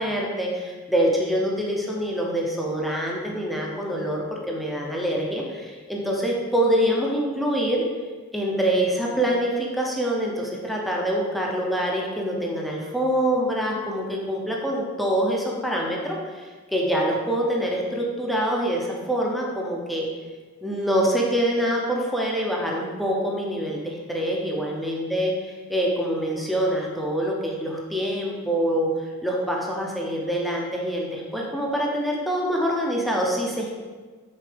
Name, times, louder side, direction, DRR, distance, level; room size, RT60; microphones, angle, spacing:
voice 1, 0.0-7.8 8.3-20.1 20.6-33.7, equal, ahead, -2 dB, 0.7 m, -25 dB
6.7 x 4.4 x 3.4 m, 1.4 s
head